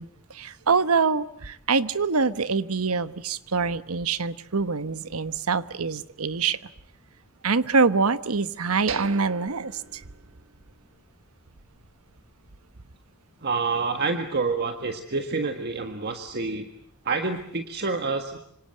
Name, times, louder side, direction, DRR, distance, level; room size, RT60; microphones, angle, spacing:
voice 1, 0.0-6.6 7.4-10.0, right 4 dB, 85° right, 14 dB, 1.1 m, -25 dB
sound 1, 8.9-10.8 11.1-11.2 11.7-11.9, right 6 dB, 65° right, 1.3 m, -38 dB
voice 2, 13.4-16.7 17.0-18.4, right 4 dB, 50° right, 6 dB, 1.7 m, -28 dB
26.5 x 26.0 x 7.8 m, 0.68 s
head